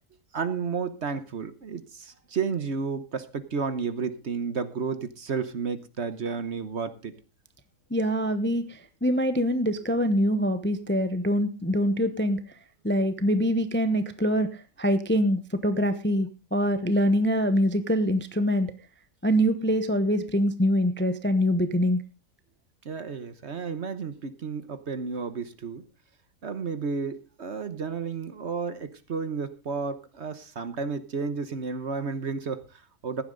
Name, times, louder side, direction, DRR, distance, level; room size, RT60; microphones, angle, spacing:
voice 1, 0.3-7.1 22.8-25.8 26.4-33.2, right 5 dB, 50° right, 1.2 m, -32 dB
voice 2, 7.9-12.4 12.8-18.7 19.2-22.0, equal, 10° left, 0.6 m, -24 dB
15.5 x 11.0 x 3.9 m
omnidirectional pair, 1.6 m